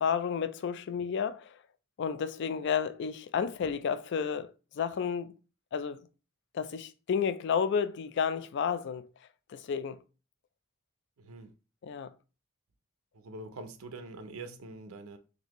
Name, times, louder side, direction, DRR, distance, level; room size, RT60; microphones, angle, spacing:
voice 1, 0.0-1.6 2.0-5.3 5.7-6.0 6.5-9.1 9.5-10.0 11.8-12.1, left 7 dB, 55° left, 0.3 m, -31 dB
voice 2, 11.2-11.5 13.1-15.2, right 2 dB, 90° right, 0.6 m, -44 dB
4.0 x 2.6 x 2.9 m
head